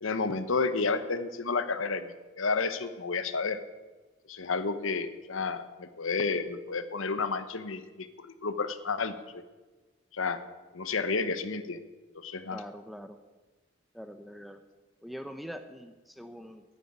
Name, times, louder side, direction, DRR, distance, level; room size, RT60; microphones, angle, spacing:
voice 1, 0.0-3.6 4.3-9.4 10.1-10.4 10.7-11.8 12.1-12.6, left 4 dB, 80° left, 12 dB, 1.0 m, -31 dB
voice 2, 12.5-13.2 13.9-14.6 15.0-16.6, equal, ahead, 8 dB, 0.6 m, -43 dB
9.8 x 9.7 x 9.8 m, 1.2 s
head